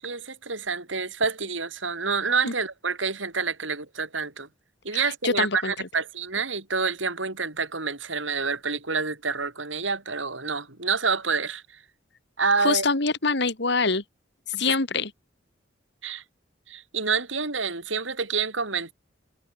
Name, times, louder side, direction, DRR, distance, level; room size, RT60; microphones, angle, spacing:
voice 1, 0.0-4.5 4.8-11.6 12.4-12.8 14.5-14.6 16.0-16.2 16.7-18.9, right 5 dB, 90° right, 6.3 m, -28 dB
voice 2, 4.9-5.7 12.6-14.0 14.6-15.1, left 4 dB, 65° left, 2.6 m, -25 dB
head